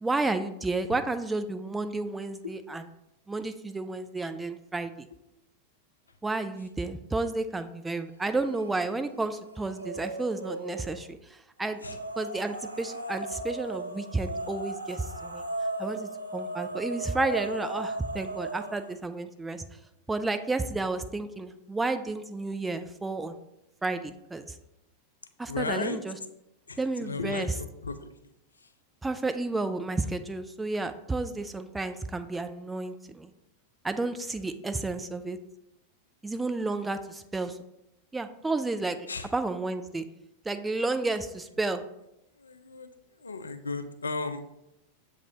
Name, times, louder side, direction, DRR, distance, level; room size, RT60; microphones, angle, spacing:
voice 1, 0.0-2.9 3.3-5.1 6.2-11.8 12.2-15.4 15.8-19.6 20.1-23.4 23.8-24.5 25.4-26.2 26.8-27.6 29.0-33.3 33.8-35.4 36.2-37.6 38.1-39.0 39.3-40.0 40.5-41.8, right 3 dB, 10° right, 9 dB, 0.3 m, -31 dB
sound 1, 8.2-8.8 9.2-11.0 11.8-18.9, right 2 dB, 80° right, 0.4 m, -37 dB
voice 2, 25.5-26.0 26.7-28.0 39.1-39.3 42.4-42.9 43.2-44.5, left 3 dB, 75° left, 9 dB, 0.3 m, -34 dB
7.1 x 2.4 x 2.8 m, 0.84 s
figure-of-eight pair, 90°, 0 cm